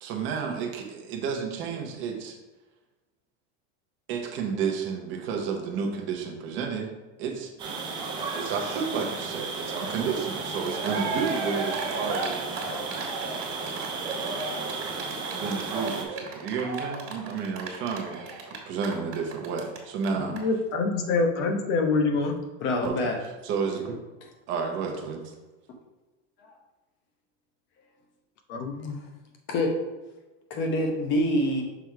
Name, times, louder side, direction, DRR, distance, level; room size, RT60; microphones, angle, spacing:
voice 1, 0.0-2.4 4.1-6.9 7.2-7.5 8.3-12.4 15.3-20.4 22.8-23.1 23.4-24.0 24.5-25.3, right 6 dB, 30° right, 2 dB, 0.9 m, -31 dB
sound 1, 7.6-16.0, right 4 dB, 15° right, 0.4 m, -34 dB
Cheering, 10.4-10.5 10.6-19.8 20.0-20.1 20.4-20.5, right 3 dB, 60° right, 1.7 m, -34 dB
voice 2, 20.1-22.3 23.8-23.9 28.5-28.9, left 3 dB, 70° left, 4 dB, 1.1 m, -26 dB
voice 3, 22.6-23.2 29.5-29.7 30.5-31.6, left 1 dB, 30° left, 2 dB, 0.9 m, -25 dB
6.1 x 3.5 x 4.6 m, 1.1 s
supercardioid pair, 170°, 37 cm